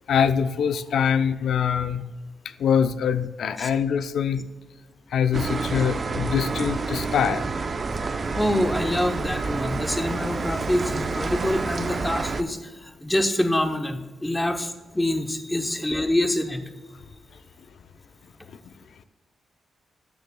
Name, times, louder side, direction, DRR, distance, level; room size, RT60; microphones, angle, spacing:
voice 1, 0.1-2.0 2.6-4.4 5.1-7.5, left 7 dB, 75° left, 12 dB, 0.4 m, -23 dB
sound 1, 5.3-12.4, right 4 dB, 35° right, 0.5 m, -28 dB
voice 2, 8.3-16.6, left 1 dB, 10° left, 6 dB, 0.7 m, -26 dB
12.5 x 9.8 x 2.2 m, 1.3 s
wide cardioid pair, 140°, 0 cm